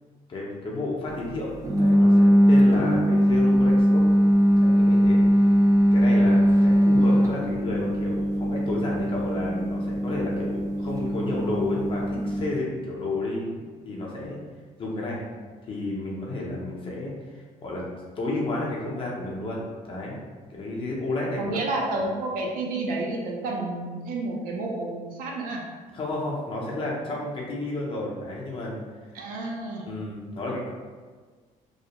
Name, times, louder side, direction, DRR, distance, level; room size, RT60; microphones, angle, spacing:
voice 1, 0.3-4.0 4.5-5.2 5.9-13.6 13.9-14.4 14.8-15.2 15.7-17.8 18.2-20.2 20.5-21.6 22.0-22.1 25.9-28.8 29.8-30.7, left 2 dB, 40° left, -4 dB, 0.6 m, -31 dB
sound 1, 1.6-12.5, equal, 25° right, 0.5 m, -20 dB
voice 2, 21.4-25.6 29.1-29.8, right 2 dB, 80° right, -1 dB, 0.5 m, -30 dB
2.3 x 2.1 x 2.9 m, 1.5 s
cardioid pair, 125°, 14 cm